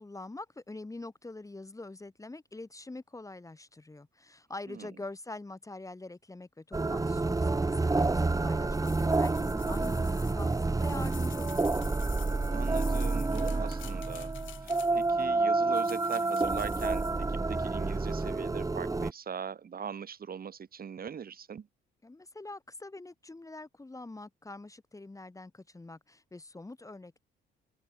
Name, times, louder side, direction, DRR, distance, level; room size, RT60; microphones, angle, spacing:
voice 1, 0.0-11.8 22.0-27.2, left 2 dB, 15° left, 2.0 m, -45 dB
sound 1, 6.7-19.1, right 3 dB, 15° right, 1.1 m, -29 dB
sound 2, 8.7-15.2 15.7-17.3, left 13 dB, 80° left, 2.0 m, -50 dB
voice 2, 12.5-21.7, right 7 dB, 50° right, 3.9 m, -41 dB
open air
cardioid pair, 90°, 20 cm